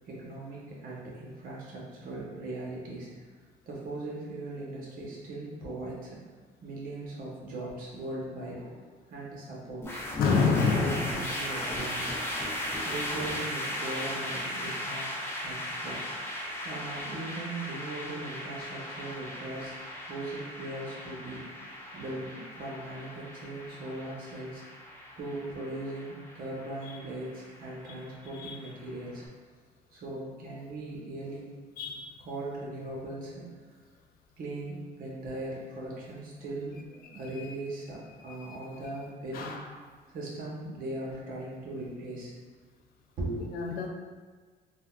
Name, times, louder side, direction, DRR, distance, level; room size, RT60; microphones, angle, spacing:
voice 1, 0.1-3.1 3.7-6.2 6.6-10.0 10.4-12.4 12.7-15.1 15.4-16.0 16.6-19.8 20.1-21.4 21.9-24.6 25.2-29.2 29.9-31.5 32.2-33.5 34.4-39.5 40.1-42.3 43.2-43.5, right 2 dB, 55° right, -4 dB, 0.9 m, -39 dB
sound 1, 9.8-29.1, left 1 dB, 15° left, 0.6 m, -37 dB
voice 2, 10.2-11.2 27.9-28.0 28.3-28.6 31.8-32.2 37.4-37.6 38.3-38.6 39.3-39.6 43.4-43.9, left 5 dB, 60° left, 3 dB, 0.4 m, -28 dB
3.5 x 2.2 x 2.3 m, 1.5 s
cardioid pair, 110°, 17 cm